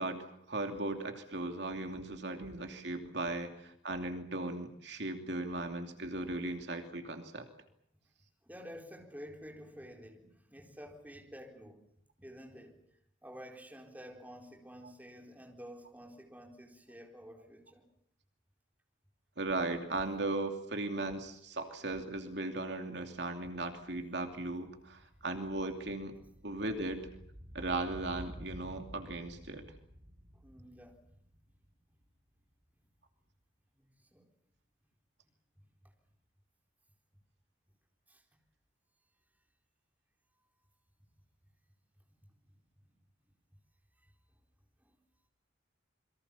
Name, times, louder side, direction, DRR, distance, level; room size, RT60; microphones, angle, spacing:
voice 1, 0.0-7.4 19.4-26.1 26.4-27.0 27.5-29.6, right 2 dB, 60° right, 2.8 m, -37 dB
voice 2, 8.4-11.8 12.2-12.8 13.2-17.8 30.3-31.0 33.8-34.2 38.1-38.2 44.9-45.0, equal, 10° right, 4.2 m, -50 dB
sound 1, 21.7-21.8 22.1-32.4 32.7-32.8, equal, 40° right, 6.6 m, -53 dB
28.0 x 23.5 x 7.1 m
head